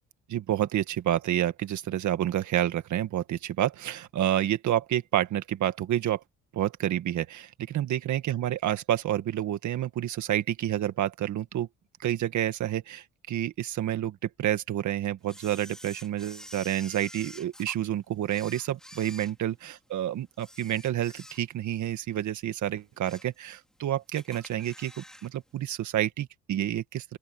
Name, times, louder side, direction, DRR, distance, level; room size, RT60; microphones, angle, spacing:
voice 1, 0.3-6.2 6.5-11.7 12.0-27.2, right 12 dB, 75° right, 1.8 m, -29 dB
Camera, 15.3-17.8 18.2-19.9 20.3-21.7 22.1-22.3 22.8-23.4 23.7-23.8 24.1-25.3 25.6-25.7, equal, ahead, 3.0 m, -48 dB
open air
cardioid pair, 90°, 30 cm